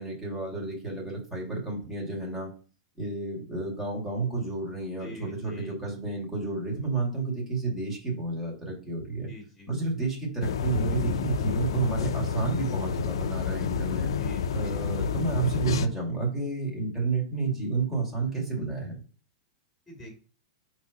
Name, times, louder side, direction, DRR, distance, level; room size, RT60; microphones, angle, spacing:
voice 1, 0.0-2.5 3.0-9.3 9.7-14.1 14.5-19.0, right 3 dB, 10° right, -3 dB, 2.5 m, -31 dB
voice 2, 5.0-5.8 9.3-9.7 14.1-14.8 19.9-20.2, equal, 5° left, -2 dB, 2.4 m, -45 dB
sound 1, 10.4-15.9, left 7 dB, 85° left, 0.5 m, -29 dB
5.5 x 3.3 x 5.2 m, 0.40 s
hypercardioid pair, 130°, 3 cm